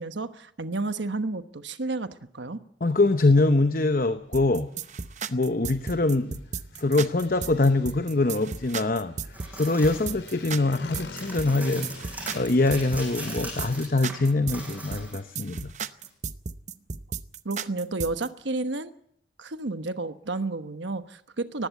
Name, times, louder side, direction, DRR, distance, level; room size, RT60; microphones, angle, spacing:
voice 1, 0.0-2.1 2.3-2.6 17.4-18.9 19.4-21.7, right 3 dB, 80° right, 10 dB, 1.2 m, -31 dB
voice 2, 2.8-4.7 5.3-6.4 6.8-9.1 9.5-11.9 12.3-15.7, left 2 dB, 45° left, 10 dB, 0.8 m, -23 dB
Motorcycle, 4.2-14.9, left 2 dB, 75° left, 4.1 m, -48 dB
sound 1, 4.3-18.3, right 5 dB, 40° right, 0.7 m, -35 dB
sound 2, 9.3-10.1 11.1-15.3 16.0-16.1, right 1 dB, 10° right, 7.6 m, -40 dB
19.5 x 15.5 x 9.3 m, 0.70 s
head